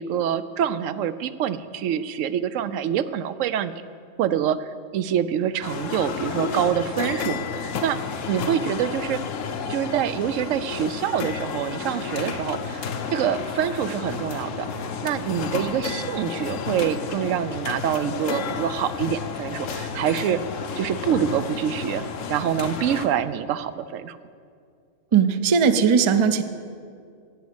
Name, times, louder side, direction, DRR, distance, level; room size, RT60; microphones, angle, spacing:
voice 1, 0.0-3.7 4.2-8.0 8.3-9.2 9.7-14.7 15.0-20.4 20.8-24.2, right 9 dB, 90° right, 13 dB, 0.9 m, -26 dB
sound 1, 5.6-23.1, left 5 dB, 85° left, 1.2 m, -31 dB
voice 2, 25.1-26.4, right 6 dB, 50° right, 10 dB, 0.3 m, -18 dB
10.5 x 8.3 x 8.0 m, 2.3 s
omnidirectional pair, 1.3 m